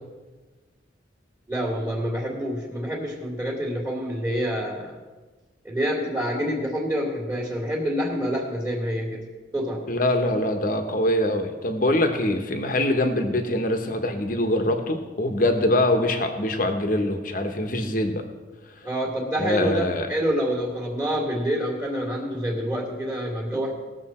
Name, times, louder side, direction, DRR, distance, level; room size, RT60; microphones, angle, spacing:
voice 1, 1.5-5.0 5.6-9.2 9.5-9.9 18.8-23.7, equal, 10° right, -5 dB, 1.9 m, -27 dB
voice 2, 9.9-18.2 19.4-20.1, left 1 dB, 45° left, 6 dB, 1.1 m, -23 dB
19.0 x 7.0 x 4.3 m, 1.3 s
head